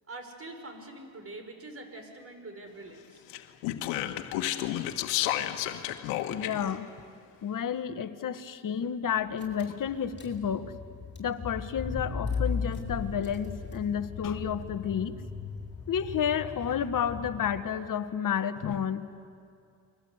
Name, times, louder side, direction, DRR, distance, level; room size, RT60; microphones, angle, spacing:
voice 1, 0.1-3.2, right 2 dB, 30° right, 5 dB, 5.9 m, -44 dB
Speech, 3.3-6.7, left 13 dB, 85° left, 1.5 m, -31 dB
voice 2, 6.3-6.9 7.4-10.8 11.2-15.2 15.9-19.1, left 8 dB, 45° left, 10 dB, 1.6 m, -31 dB
Car / Engine, 9.1-9.2 9.4-17.7, left 5 dB, 25° left, 7.5 m, -37 dB
29.5 x 22.5 x 8.2 m, 2.4 s
supercardioid pair, 80°, 43 cm